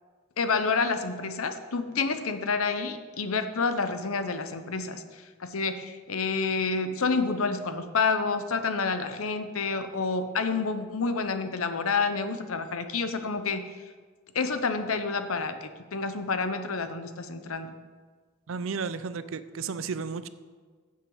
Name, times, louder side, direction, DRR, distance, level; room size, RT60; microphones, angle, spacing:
voice 1, 0.4-5.0 5.4-13.6 14.3-17.7, left 4 dB, 90° left, 9 dB, 0.9 m, -29 dB
voice 2, 18.5-20.3, right 5 dB, 70° right, 13 dB, 0.5 m, -33 dB
14.5 x 7.4 x 4.0 m, 1.5 s
head